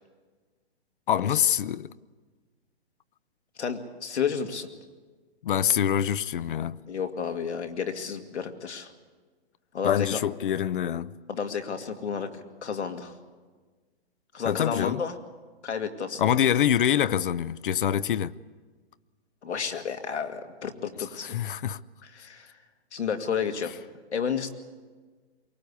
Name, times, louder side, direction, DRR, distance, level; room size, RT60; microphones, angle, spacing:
voice 1, 1.1-1.9 5.4-6.8 9.8-11.1 14.4-15.0 16.2-18.3 21.2-21.8, left 10 dB, 50° left, 0.6 m, -25 dB
voice 2, 3.6-4.7 6.9-8.9 9.7-10.2 11.3-13.1 14.3-15.2 15.6-16.3 19.4-21.4 22.1-22.5 22.9-23.7 24.1-24.5, left 6 dB, 80° left, 2.2 m, -31 dB
23.5 x 19.0 x 8.3 m
hypercardioid pair, 150°, 33 cm